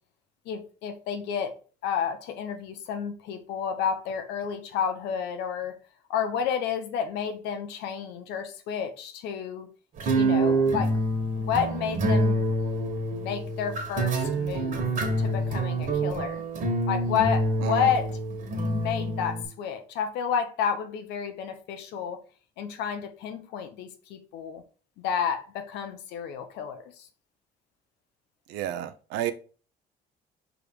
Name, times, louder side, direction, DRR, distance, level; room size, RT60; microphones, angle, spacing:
voice 1, 0.4-1.5 1.8-5.8 6.1-9.7 10.1-10.9 11.4-12.5 13.1-14.8 15.2-16.4 16.9-18.2 18.7-22.2 22.6-24.6 25.0-26.8, left 7 dB, 85° left, 1.0 m, -30 dB
sound 1, 10.0-19.4, right 1 dB, 55° right, 1.8 m, -26 dB
voice 2, 28.5-29.3, right 11 dB, 90° right, 0.7 m, -30 dB
5.2 x 3.7 x 4.8 m
cardioid pair, 110°, 17 cm